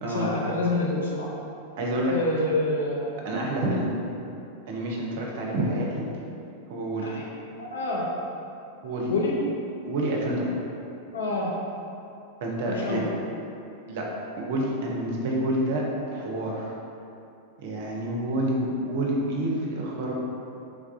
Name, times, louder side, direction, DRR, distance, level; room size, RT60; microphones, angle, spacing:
voice 1, 0.0-1.3 2.1-3.1 7.0-7.3 7.6-8.1 9.0-9.4 11.1-11.5 12.7-13.1, left 2 dB, 65° left, -3 dB, 0.4 m, -27 dB
voice 2, 1.8-2.1 3.3-3.9 4.7-6.0 6.7-7.1 8.8-9.1 9.9-10.6 12.4-13.0 13.9-14.1 14.4-15.8 16.1-16.7 17.6-20.1, right 1 dB, 55° right, -2 dB, 0.5 m, -28 dB
3.3 x 2.3 x 2.4 m, 2.7 s
figure-of-eight pair, 90°, 0 cm